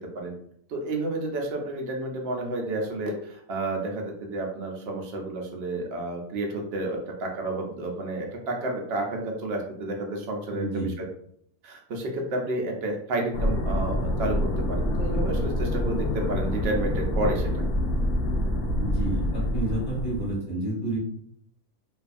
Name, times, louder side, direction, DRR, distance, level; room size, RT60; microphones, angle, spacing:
voice 1, 0.7-11.1 11.6-17.5, right 2 dB, 65° right, 1 dB, 0.6 m, -31 dB
voice 2, 10.5-10.9 18.8-21.0, right 2 dB, 30° left, -6 dB, 1.0 m, -30 dB
sound 1, 13.3-20.4, left 1 dB, 70° left, 0.6 m, -26 dB
2.6 x 2.3 x 2.5 m, 0.68 s
omnidirectional pair, 1.6 m